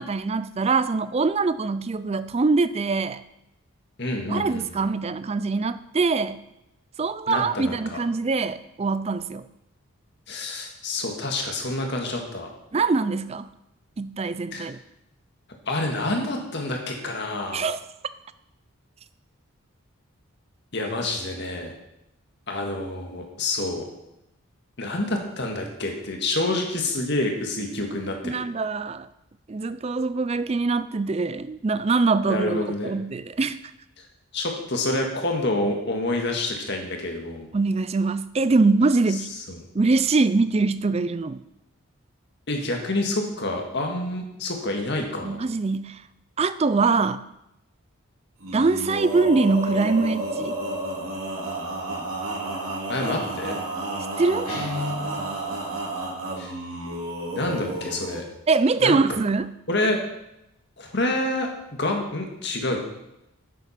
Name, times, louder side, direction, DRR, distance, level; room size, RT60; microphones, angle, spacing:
voice 1, 0.0-3.2 4.3-6.4 7.0-9.5 12.7-13.5 14.0-14.8 17.5-17.8 28.2-29.1 29.5-33.6 37.5-39.3 39.7-41.4 45.2-46.0 46.4-47.2 48.5-50.5 54.2-54.5 58.5-59.5, right 3 dB, 30° right, 15 dB, 0.4 m, -23 dB
voice 2, 4.0-4.9 7.3-8.0 10.3-12.5 14.5-14.7 15.7-17.6 20.7-21.7 22.5-23.9 24.8-28.4 32.3-32.9 34.3-37.5 39.5-39.6 42.5-45.4 52.9-53.6 56.4-56.5 57.3-58.2 58.8-59.2 59.7-60.0 60.8-61.5 61.8-62.8, left 2 dB, 50° left, 2 dB, 1.8 m, -28 dB
Male singing, 48.4-58.2, right 1 dB, 70° right, 3.3 m, -31 dB
Guitar, 54.5-55.3, left 3 dB, 90° left, 4.0 m, -31 dB
9.3 x 7.9 x 5.8 m, 0.87 s
head